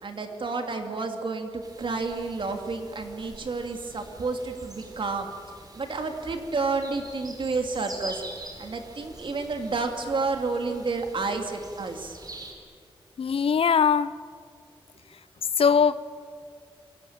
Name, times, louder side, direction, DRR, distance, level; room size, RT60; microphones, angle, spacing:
voice 1, 0.0-5.3 5.7-8.2 8.6-12.2, right 3 dB, 60° right, 4 dB, 2.9 m, -30 dB
sound 1, 1.6-12.5, right 1 dB, 45° right, 4.3 m, -45 dB
voice 2, 13.2-14.1 15.6-16.0, left 6 dB, 80° left, 16 dB, 0.7 m, -21 dB
28.5 x 23.5 x 8.9 m, 2.2 s
wide cardioid pair, 125°, 9 cm